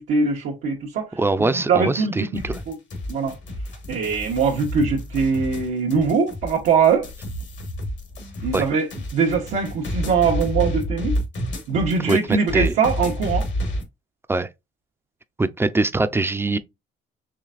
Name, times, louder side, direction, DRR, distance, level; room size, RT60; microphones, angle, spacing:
voice 1, 0.0-2.8 3.1-3.4 3.9-7.1 8.4-11.2 11.7-13.5, right 5 dB, 80° right, 1.0 m, -22 dB
voice 2, 1.2-2.6 8.5-8.6 12.1-12.2 12.5-12.7 14.3-14.5 15.4-16.6, right 2 dB, 10° right, 0.5 m, -22 dB
sound 1, 2.3-13.8, equal, 65° left, 1.5 m, -29 dB
4.8 x 3.2 x 2.4 m
cardioid pair, 90°, 20 cm